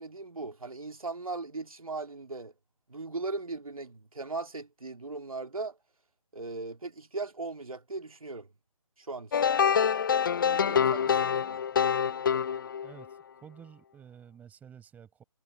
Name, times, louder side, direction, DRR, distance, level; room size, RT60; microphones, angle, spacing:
voice 1, 0.0-2.5 2.9-5.8 6.3-8.5 9.0-9.4 10.5-11.6, right 3 dB, 70° right, 2.5 m, -38 dB
sound 1, 9.3-13.1, left 7 dB, 35° left, 0.6 m, -26 dB
voice 2, 13.4-15.2, right 8 dB, 10° right, 6.4 m, -53 dB
figure-of-eight pair, 145°, 18 cm